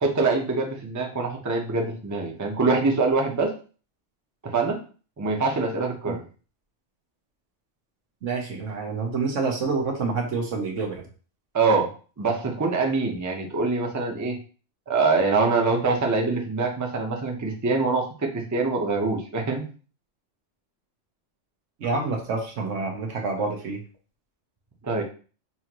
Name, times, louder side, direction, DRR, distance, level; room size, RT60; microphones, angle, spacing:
voice 1, 0.0-3.5 4.4-4.8 5.2-6.2 11.5-11.9 12.2-14.4 14.9-19.7 24.8-25.0, right 3 dB, 20° right, 2 dB, 0.6 m, -24 dB
voice 2, 8.2-11.1 21.8-23.8, right 4 dB, 80° right, 2 dB, 1.3 m, -27 dB
5.5 x 2.5 x 3.0 m, 0.38 s
omnidirectional pair, 1.3 m